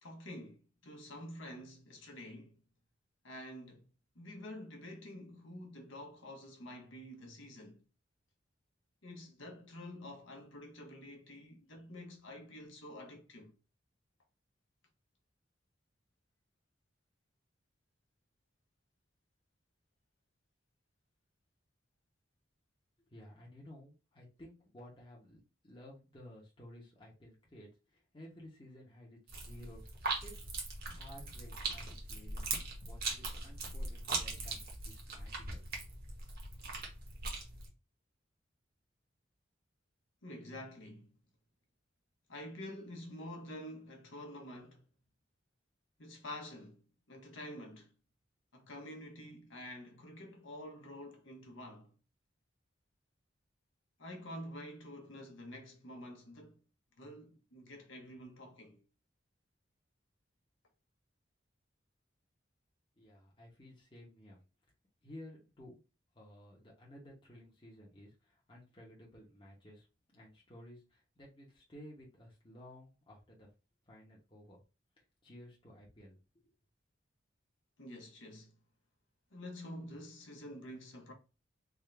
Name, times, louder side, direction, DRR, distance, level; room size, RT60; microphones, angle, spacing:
voice 1, 0.0-2.6 3.2-3.9 4.1-7.8 9.0-13.5 40.2-41.1 42.3-44.8 46.0-47.9 48.5-51.9 54.0-56.6 57.0-58.8 77.8-78.5 79.3-81.1, left 1 dB, 80° left, 1.1 m, -48 dB
voice 2, 23.1-29.9 30.2-30.4 30.8-32.5 32.8-35.6 63.0-64.4 65.0-65.8 66.1-69.9 70.1-73.5 73.9-74.6 75.2-76.5, left 1 dB, 25° left, 1.0 m, -55 dB
sound 1, 29.3-37.7, right 3 dB, 50° right, 1.1 m, -40 dB
3.6 x 2.5 x 3.3 m
head